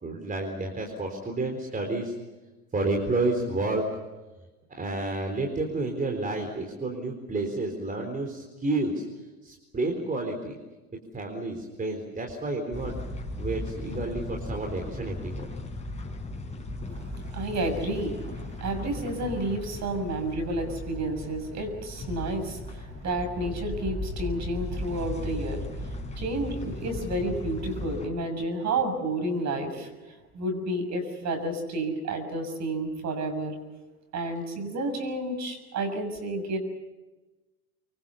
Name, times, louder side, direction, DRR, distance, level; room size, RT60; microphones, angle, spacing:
voice 1, 0.0-2.1 2.7-4.0 4.8-9.1 9.4-10.6 11.1-13.0 13.4-15.5, right 2 dB, 20° right, 2 dB, 4.0 m, -30 dB
sound 1, 12.7-28.1, left 1 dB, 15° left, 5.9 m, -37 dB
voice 2, 16.9-33.5 34.1-36.6, right 1 dB, 40° right, 7 dB, 6.6 m, -31 dB
25.5 x 23.5 x 7.0 m, 1.1 s
hypercardioid pair, 85°, 44 cm